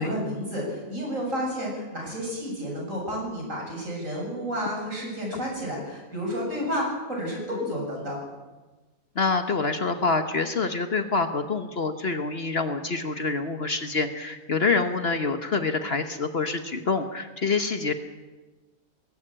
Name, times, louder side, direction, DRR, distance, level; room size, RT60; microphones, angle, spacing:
voice 1, 0.0-8.2, equal, 60° right, -2 dB, 7.7 m, -31 dB
voice 2, 9.1-17.9, left 4 dB, 45° left, 8 dB, 1.3 m, -26 dB
20.0 x 16.0 x 8.7 m, 1.2 s
omnidirectional pair, 1.5 m